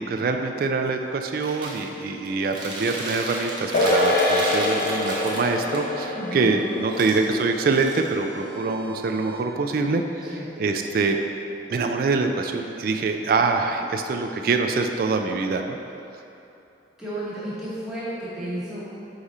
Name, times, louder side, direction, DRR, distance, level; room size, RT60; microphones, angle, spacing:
voice 1, 0.0-10.3 10.6-11.2 11.7-15.8, right 4 dB, 55° right, 4 dB, 0.3 m, -24 dB
sound 1, 0.9-4.8 5.3-9.4, right 1 dB, 70° right, 0.9 m, -45 dB
Chewing mastication, 1.4-1.8 2.2-5.8 6.9-8.4, right 2 dB, 25° right, 0.7 m, -34 dB
sound 2, 3.7-10.4 10.7-10.8, left 2 dB, 55° left, 0.6 m, -27 dB
voice 2, 6.1-6.5 10.2-10.4 17.0-18.8, right 1 dB, 5° right, -11 dB, 1.3 m, -32 dB
5.0 x 4.8 x 4.1 m, 2.8 s
head